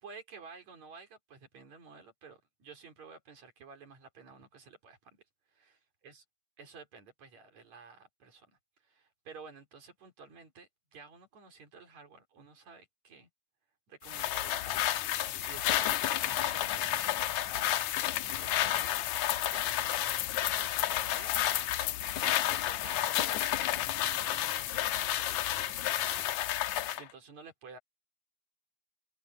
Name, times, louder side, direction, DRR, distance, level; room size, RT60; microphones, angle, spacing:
voice 1, 0.0-5.2 5.5-5.8 6.0-6.2 6.6-8.5 8.8-13.3 13.9-19.1 19.4-21.6 22.1-27.8, right 5 dB, 70° right, 5.5 m, -53 dB
sound 1, 14.1-27.0, left 13 dB, 90° left, 2.3 m, -31 dB
omnidirectional pair, 3.3 m